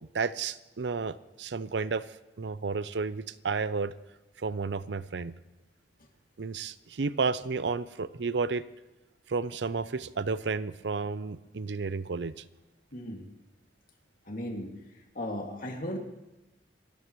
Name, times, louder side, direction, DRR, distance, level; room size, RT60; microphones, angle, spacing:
voice 1, 0.1-2.1 2.4-3.9 4.4-5.3 6.4-8.6 9.3-12.4, right 4 dB, 80° right, 15 dB, 0.6 m, -32 dB
voice 2, 12.9-13.3 14.3-14.7 15.2-16.0, left 1 dB, 50° left, 1 dB, 2.3 m, -36 dB
29.5 x 14.0 x 3.1 m, 1.1 s
head